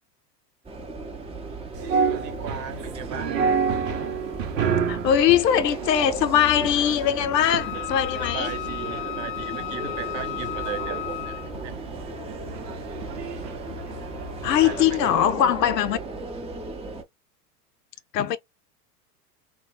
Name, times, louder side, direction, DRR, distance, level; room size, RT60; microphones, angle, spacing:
sound 1, 0.6-17.0, right 3 dB, 15° right, 0.6 m, -37 dB
voice 1, 1.5-3.6 8.2-12.0 14.4-15.1, right 7 dB, 40° right, 0.9 m, -38 dB
sound 2, 1.7-15.0, right 5 dB, 85° right, 1.0 m, -31 dB
voice 2, 4.9-8.5 14.4-16.0 18.1-18.4, left 10 dB, 85° left, 0.7 m, -21 dB
Wind instrument woodwind instrument, 7.4-11.6, left 16 dB, 50° left, 0.5 m, -34 dB
2.8 x 2.2 x 3.4 m
hypercardioid pair, 95°, 48 cm